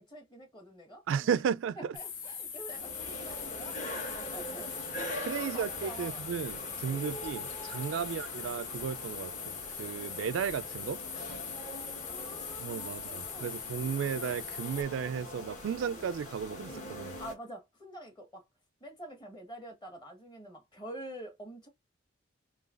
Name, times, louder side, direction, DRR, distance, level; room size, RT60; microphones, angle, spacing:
voice 1, 0.0-1.4 1.8-4.7 5.4-6.2 6.8-7.1 11.9-13.5 17.2-18.4 18.8-21.7, right 1 dB, 25° left, 1.5 m, -47 dB
voice 2, 1.1-1.9 5.2-11.0 12.6-17.2, right 7 dB, 80° right, 0.3 m, -34 dB
sound 1, 1.9-14.8, left 7 dB, 80° left, 1.1 m, -41 dB
sound 2, 2.6-17.3, left 1 dB, 40° left, 1.4 m, -43 dB
3.8 x 3.5 x 2.4 m
head